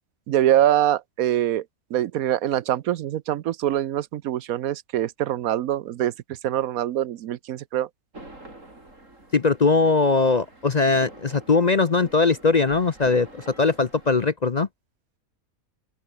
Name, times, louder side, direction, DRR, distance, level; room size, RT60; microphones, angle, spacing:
voice 1, 0.3-1.6 1.9-6.1 6.4-7.9, right 12 dB, 80° right, 1.2 m, -24 dB
sound 1, 8.1-14.2, right 2 dB, 60° right, 6.9 m, -46 dB
voice 2, 9.3-14.7, left 4 dB, 40° left, 0.7 m, -20 dB
omnidirectional pair, 1.5 m